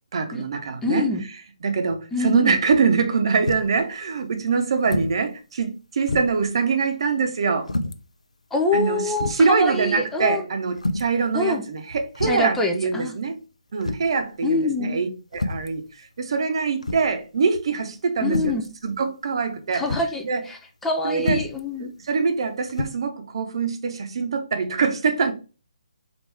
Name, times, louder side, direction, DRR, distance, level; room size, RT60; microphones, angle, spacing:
voice 1, 0.1-1.1 1.6-7.7 8.7-13.4 13.7-19.8 20.2-20.4 21.0-21.4 22.0-25.3, right 5 dB, 50° right, 0.8 m, -24 dB
voice 2, 0.8-1.2 2.1-2.6 8.5-10.5 11.3-11.6 12.2-13.1 14.4-15.0 18.2-18.7 19.7-21.9, left 2 dB, 5° left, 0.4 m, -25 dB
sound 1, 3.5-3.8 4.8-5.2 5.6-5.7 6.1-6.5 7.7-8.0 8.7-8.8 9.2-9.5 10.8-11.2 12.1-12.5 13.8-14.2 15.3-15.7 16.8-17.2 18.2-18.7 19.9-20.1 21.2-21.6 22.7-22.9, left 2 dB, 80° left, 0.5 m, -28 dB
4.5 x 2.5 x 3.3 m
figure-of-eight pair, 140°, 4 cm